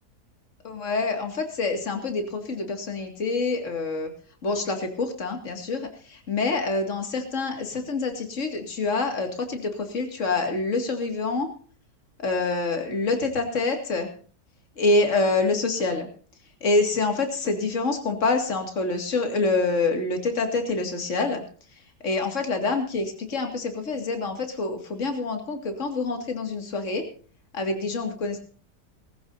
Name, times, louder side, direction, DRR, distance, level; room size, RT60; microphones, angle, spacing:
voice 1, 0.6-4.1 4.4-11.5 12.2-14.1 14.8-16.1 16.6-21.4 21.7-27.0 27.5-28.4, left 3 dB, 50° left, 4 dB, 2.5 m, -26 dB
20.0 x 14.5 x 2.7 m, 0.42 s
omnidirectional pair, 1.8 m